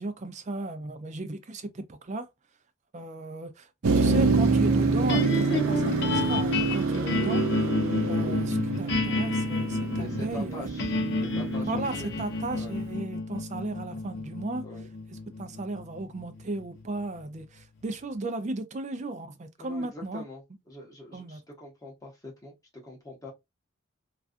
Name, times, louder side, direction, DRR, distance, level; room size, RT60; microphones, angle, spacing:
voice 1, 0.0-2.3 2.9-7.4 8.0-10.6 11.7-14.6 15.4-20.2 21.1-21.4, right 2 dB, 35° right, 0.4 m, -35 dB
Motor vehicle (road), 3.8-12.8, right 3 dB, 85° right, 0.6 m, -27 dB
sound 1, 5.1-17.4, left 2 dB, 55° left, 0.6 m, -30 dB
voice 2, 10.0-12.1 12.5-12.8 14.6-14.9 19.6-23.3, left 2 dB, 15° left, 0.8 m, -44 dB
2.4 x 2.3 x 2.4 m
head